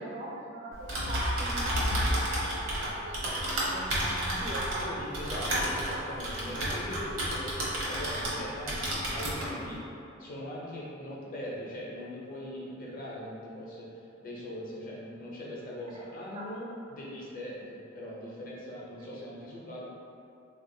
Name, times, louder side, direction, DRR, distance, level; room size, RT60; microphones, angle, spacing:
voice 1, 0.0-4.9 5.9-6.1 11.2-11.3 16.2-16.5 19.0-19.1, right 1 dB, 30° right, -3 dB, 0.4 m, -41 dB
Typing, 0.7-8.4 8.7-9.5, equal, 75° right, 0.8 m, -31 dB
voice 2, 4.8-9.8 10.2-13.9 14.2-19.9, left 1 dB, 45° left, -5 dB, 0.6 m, -40 dB
3.5 x 2.4 x 2.6 m, 2.6 s
head